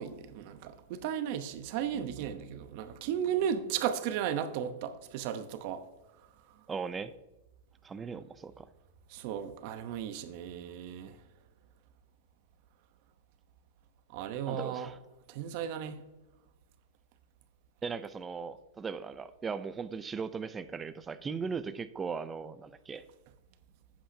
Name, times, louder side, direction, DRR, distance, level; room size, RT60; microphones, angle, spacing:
voice 1, 0.0-5.8 9.1-11.2 14.1-14.9 15.3-16.0, right 9 dB, 50° right, 0.9 m, -35 dB
voice 2, 6.7-7.1 7.8-8.7 14.5-15.0 17.8-23.0, right 5 dB, 15° right, 0.5 m, -38 dB
11.0 x 8.9 x 2.8 m
hypercardioid pair, 135°, 0 cm